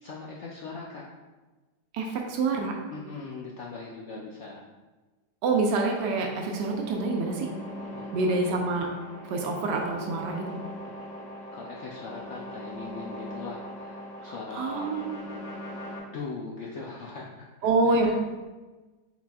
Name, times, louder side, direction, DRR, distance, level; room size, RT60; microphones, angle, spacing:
voice 1, 0.0-1.1 2.9-4.6 7.9-8.5 11.5-14.9 16.1-18.1, left 4 dB, 80° left, -3 dB, 0.6 m, -40 dB
voice 2, 1.9-2.8 5.4-7.5 8.1-8.9 9.3-10.4 14.2-15.2 17.6-18.1, right 3 dB, 85° right, 1 dB, 1.2 m, -26 dB
sound 1, 6.0-16.0, equal, 35° left, 0.7 m, -40 dB
5.8 x 4.0 x 2.3 m, 1.2 s
omnidirectional pair, 1.8 m